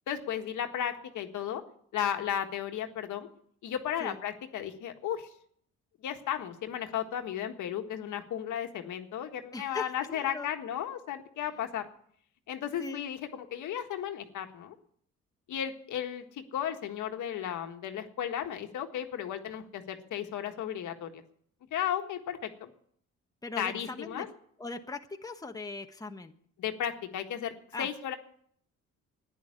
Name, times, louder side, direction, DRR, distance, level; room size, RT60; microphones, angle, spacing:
voice 1, 0.1-1.6 1.9-3.3 3.6-5.3 6.0-11.9 12.5-14.7 15.5-21.2 21.7-22.7 23.6-24.3 26.6-27.5 27.8-28.2, left 9 dB, 75° left, 5 dB, 1.6 m, -34 dB
voice 2, 9.5-10.5 12.8-13.0 23.4-24.3 24.6-26.3 27.7-27.9, left 3 dB, 10° left, 4 dB, 1.2 m, -40 dB
11.0 x 10.0 x 9.7 m, 0.65 s
cardioid pair, 90°, 30 cm